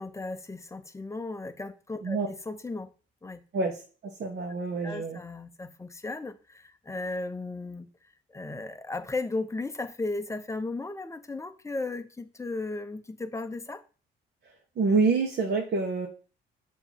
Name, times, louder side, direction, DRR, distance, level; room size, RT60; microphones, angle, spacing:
voice 1, 0.0-2.9 3.2-3.4 4.8-7.9 8.3-13.8, left 3 dB, 15° left, 9 dB, 0.7 m, -35 dB
voice 2, 3.5-5.2 14.8-16.1, right 4 dB, 55° right, 1 dB, 1.3 m, -27 dB
7.0 x 3.1 x 5.8 m, 0.37 s
cardioid pair, 90°, 20 cm